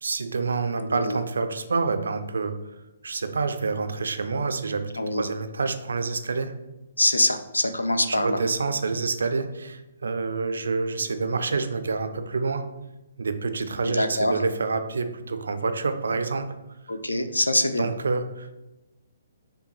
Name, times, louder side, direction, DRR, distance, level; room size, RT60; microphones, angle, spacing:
voice 1, 0.0-2.5 3.0-6.5 8.1-12.6 13.2-16.5 17.8-18.5, right 4 dB, 65° right, 9 dB, 0.4 m, -27 dB
voice 2, 0.8-1.2 5.0-5.2 7.0-8.4 13.8-14.4 16.9-17.9, left 1 dB, 80° left, 9 dB, 0.4 m, -24 dB
5.0 x 2.2 x 3.1 m, 0.99 s
figure-of-eight pair, 130°, 0 cm